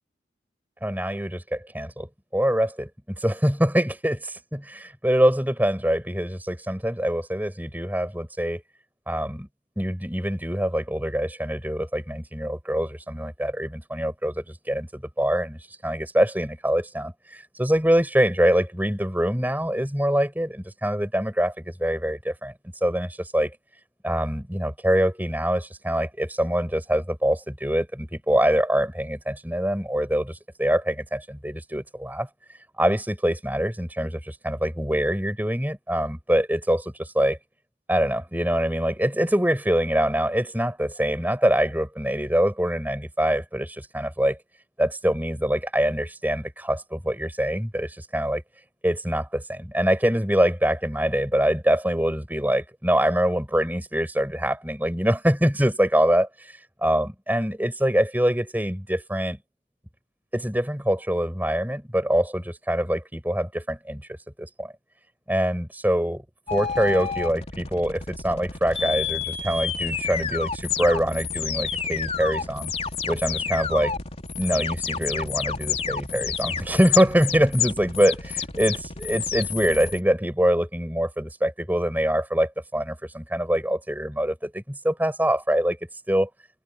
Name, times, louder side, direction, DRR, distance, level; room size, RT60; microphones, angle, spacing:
voice 1, 0.8-2.1 2.3-2.9 3.2-8.6 9.1-9.5 9.8-22.5 22.8-23.5 24.0-32.3 32.8-37.4 37.9-44.4 44.8-48.4 48.8-56.3 56.8-59.4 60.3-64.0 64.4-64.7 65.3-66.2 66.5-72.7 73.1-73.9 74.4-85.8 86.1-86.3, equal, 10° right, 6.3 m, -24 dB
sound 1, 66.5-80.0, left 6 dB, 35° left, 3.7 m, -30 dB
head